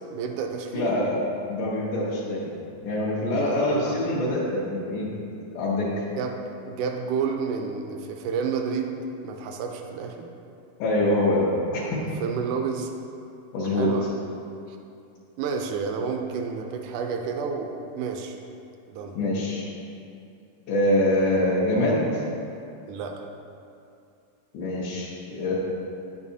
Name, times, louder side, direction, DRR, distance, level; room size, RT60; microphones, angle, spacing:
voice 1, 0.1-1.0 3.4-4.0 6.2-6.4 6.7-10.2 12.2-12.9 13.6-14.1 14.7-14.8 15.4-18.4 18.9-19.2 22.9-23.3, right 5 dB, 90° right, 3 dB, 2.1 m, -30 dB
voice 2, 0.7-1.2 1.5-2.5 2.8-5.1 5.5-6.1 10.8-12.0 13.5-13.9 19.1-19.7 20.7-22.2 24.5-25.6, left 1 dB, 90° left, -8 dB, 2.5 m, -24 dB
9.6 x 7.3 x 2.7 m, 2.6 s
omnidirectional pair, 3.4 m